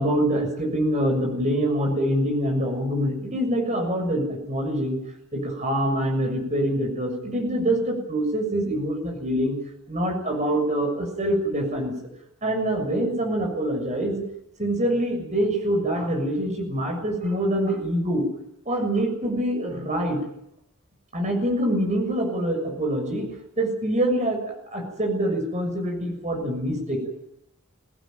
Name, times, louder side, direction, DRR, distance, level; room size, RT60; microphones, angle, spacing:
voice 1, 0.0-5.0 5.3-9.6 9.9-11.9 12.4-14.2 14.6-18.2 18.7-20.2 21.1-23.3 23.6-27.1, right 1 dB, 30° right, 3 dB, 6.8 m, -25 dB
23.5 x 18.5 x 9.3 m, 0.78 s
head